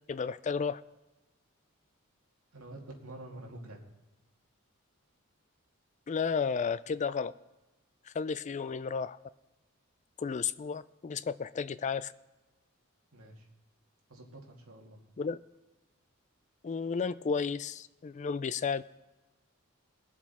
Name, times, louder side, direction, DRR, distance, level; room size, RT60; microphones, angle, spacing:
voice 1, 0.1-0.8 6.1-7.3 8.0-9.2 10.2-12.1 15.2-15.4 16.6-18.8, left 5 dB, 35° left, 16 dB, 0.3 m, -33 dB
voice 2, 2.5-3.8 13.1-13.5 14.1-15.0, right 1 dB, 75° right, 0 dB, 2.3 m, -47 dB
21.5 x 7.3 x 4.2 m, 1.1 s
head